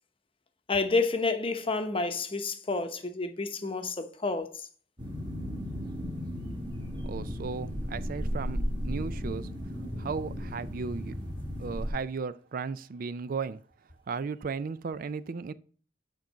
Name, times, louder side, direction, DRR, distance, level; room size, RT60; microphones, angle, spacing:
voice 1, 0.7-4.6, left 3 dB, 30° left, 0.8 m, -29 dB
sound 1, 5.0-11.9, equal, 25° right, 1.8 m, -35 dB
voice 2, 7.0-9.5 10.0-11.1 11.6-13.6 14.1-15.5, right 5 dB, 50° right, 0.4 m, -35 dB
9.0 x 3.8 x 5.6 m
head